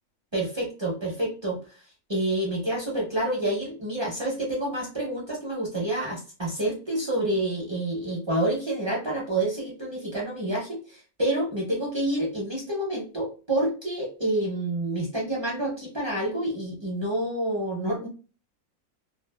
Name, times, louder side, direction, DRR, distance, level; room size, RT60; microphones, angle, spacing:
voice 1, 0.3-1.6 2.1-18.1, right 1 dB, 35° right, -4 dB, 0.4 m, -28 dB
2.6 x 2.3 x 2.2 m, 0.36 s
omnidirectional pair, 1.6 m